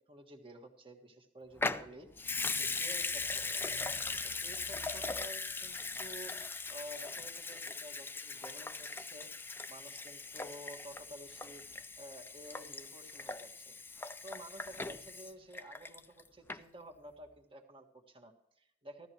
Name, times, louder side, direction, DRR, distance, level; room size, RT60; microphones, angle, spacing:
voice 1, 0.1-3.7 4.1-6.3 6.7-9.3 9.7-11.6 12.0-13.7 14.2-19.1, equal, 30° right, 2 dB, 1.6 m, -52 dB
Water tap faucet / Sink (filling or washing) / Liquid, 1.6-16.2 16.5-16.6, left 3 dB, 15° left, 0.4 m, -39 dB
15.0 x 13.0 x 3.0 m, 0.74 s
head